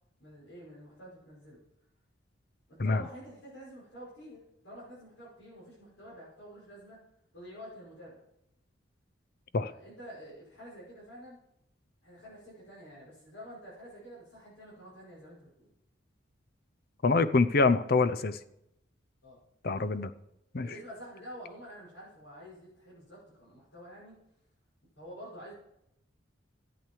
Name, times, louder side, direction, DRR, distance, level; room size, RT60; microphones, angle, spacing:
voice 1, 0.2-1.6 2.7-7.0 7.3-8.2 9.6-11.4 12.0-15.7 19.2-19.4 19.7-19.8 20.6-24.2 25.0-25.5, equal, 75° left, -8 dB, 5.9 m, -48 dB
voice 2, 17.0-18.4 19.6-20.1 20.5-20.7, left 3 dB, 50° left, 14 dB, 0.6 m, -25 dB
14.5 x 8.5 x 4.6 m, 0.82 s
head